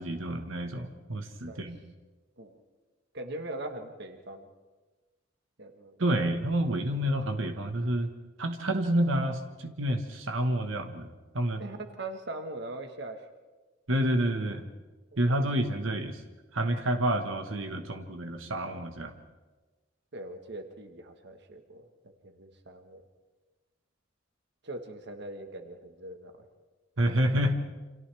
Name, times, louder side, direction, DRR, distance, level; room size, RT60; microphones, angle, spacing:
voice 1, 0.0-1.8 6.0-8.1 8.4-11.1 11.3-11.6 13.9-14.7 15.2-16.2 16.5-19.2 27.0-27.6, right 1 dB, 80° right, 6 dB, 1.5 m, -29 dB
voice 2, 3.1-4.5 5.6-6.1 11.6-13.2 15.1-15.4 20.1-21.9 22.2-23.0 24.6-26.5, right 2 dB, 60° right, 5 dB, 1.5 m, -41 dB
29.5 x 26.5 x 3.5 m, 1.2 s
head